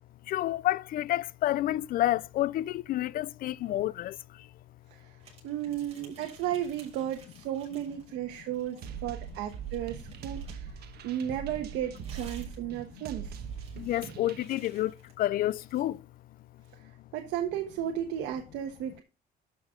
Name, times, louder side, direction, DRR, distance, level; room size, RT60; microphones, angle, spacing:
voice 1, 0.3-4.1 13.8-14.9 15.2-16.0, left 14 dB, 60° left, 0.4 m, -29 dB
sound 1, 5.2-8.1 8.4-10.8 11.5-15.9, right 5 dB, 35° right, 6.5 m, -56 dB
voice 2, 5.4-10.8 11.0-13.4 16.7-19.0, right 10 dB, 90° right, 1.3 m, -34 dB
sound 2, 8.8-14.5, right 8 dB, 70° right, 1.3 m, -42 dB
12.5 x 5.4 x 3.7 m
cardioid pair, 110°, 17 cm